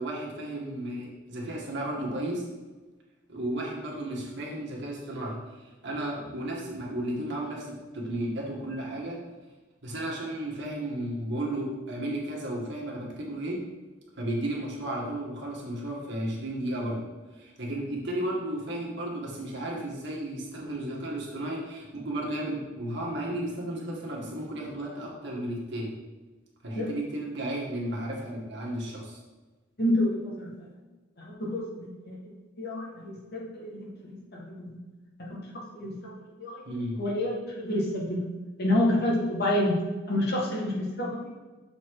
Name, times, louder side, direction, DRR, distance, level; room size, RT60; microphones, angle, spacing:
voice 1, 0.0-2.5 3.3-9.2 9.8-13.6 14.2-26.0 26.6-29.2 36.7-37.0, right 1 dB, 60° right, -3 dB, 1.7 m, -34 dB
voice 2, 29.8-30.5 31.2-32.3 32.6-34.8 35.2-35.3 35.7-36.1 36.4-36.6 37.0-38.3 38.6-39.8 40.1-41.3, left 1 dB, 50° left, -3 dB, 1.7 m, -29 dB
7.1 x 4.3 x 4.8 m, 1.2 s
head